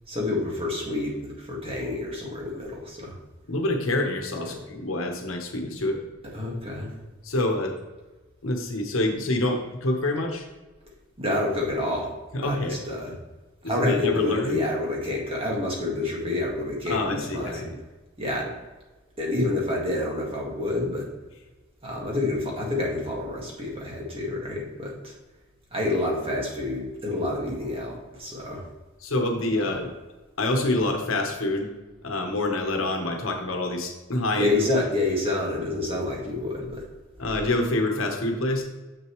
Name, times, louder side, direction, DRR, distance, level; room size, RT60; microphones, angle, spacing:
voice 1, 0.1-3.1 4.5-4.6 6.3-6.9 11.2-12.1 12.4-13.1 13.7-17.7 18.2-18.5 19.2-21.1 21.8-25.1 25.7-28.7 34.4-36.8, left 2 dB, 30° right, -2 dB, 1.8 m, -28 dB
voice 2, 3.5-6.0 7.2-7.8 8.4-10.5 12.3-12.8 13.9-14.6 16.9-17.8 29.0-29.9 30.4-31.7 32.0-34.5 37.2-38.6, left 1 dB, 75° left, 3 dB, 1.2 m, -26 dB
6.9 x 6.6 x 3.1 m, 1.2 s
head